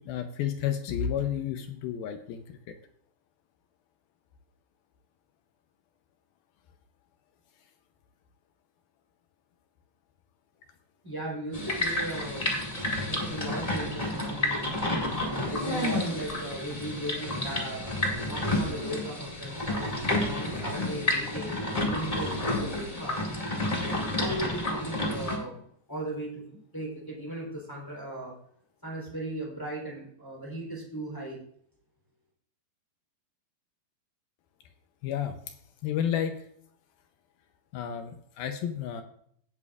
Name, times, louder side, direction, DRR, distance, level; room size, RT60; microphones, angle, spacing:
voice 1, 0.0-2.8 18.5-18.6 35.0-35.4 35.8-36.5 37.7-39.0, left 9 dB, 75° left, 7 dB, 2.3 m, -31 dB
voice 2, 11.0-12.5 12.8-14.7 15.2-17.9 18.3-23.2 23.8-25.6 25.9-28.3 28.8-31.4, right 1 dB, 5° left, -4 dB, 2.9 m, -37 dB
sound 1, 11.5-25.4, left 1 dB, 40° left, 0.5 m, -30 dB
16.5 x 8.8 x 2.5 m, 0.65 s
omnidirectional pair, 4.9 m